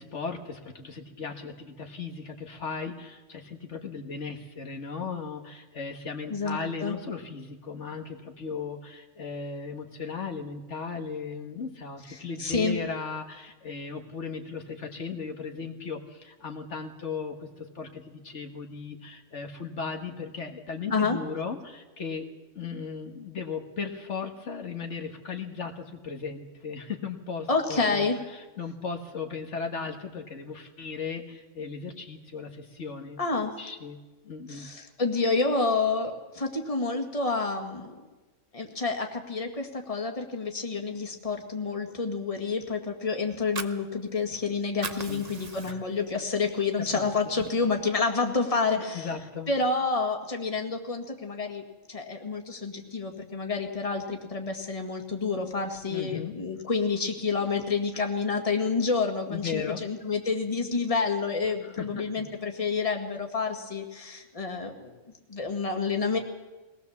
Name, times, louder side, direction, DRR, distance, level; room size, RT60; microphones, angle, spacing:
voice 1, 0.0-22.3 22.5-33.2 33.6-34.0 34.2-34.7 45.1-45.2 45.7-45.8 46.8-46.9 48.9-49.5 55.9-56.4 59.3-59.8 61.6-62.1, left 5 dB, 70° left, 4 dB, 1.7 m, -36 dB
voice 2, 6.3-7.0 12.1-12.8 20.9-21.2 27.5-28.2 33.2-33.5 34.5-37.9 38.5-49.1 49.5-51.6 51.9-64.9 65.3-66.2, left 4 dB, 30° left, 3 dB, 1.9 m, -29 dB
Fire, 43.3-44.4 44.7-46.1 46.5-46.6 47.0-48.0, right 4 dB, 35° right, 0.9 m, -39 dB
22.0 x 18.5 x 7.1 m, 1.2 s
omnidirectional pair, 1.3 m